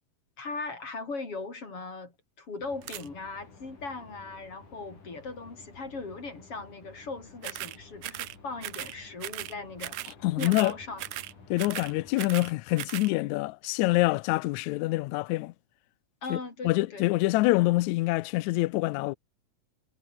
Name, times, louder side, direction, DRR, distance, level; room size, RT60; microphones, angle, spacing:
voice 1, 0.4-10.0 10.4-11.0 16.2-17.1, left 3 dB, 40° left, 6.8 m, -39 dB
sound 1, 2.6-12.2, left 4 dB, 60° left, 7.9 m, -53 dB
sound 2, 2.8-3.1 7.4-7.8 8.0-8.4 8.6-9.0 9.2-9.5 9.8-10.1 10.4-10.7 11.0-11.3 11.6-12.5 12.8-13.1, right 15 dB, 75° right, 2.5 m, -37 dB
voice 2, 10.2-10.7 11.5-15.5 16.3-16.4 16.6-19.2, left 20 dB, 90° left, 1.6 m, -26 dB
omnidirectional pair, 4.0 m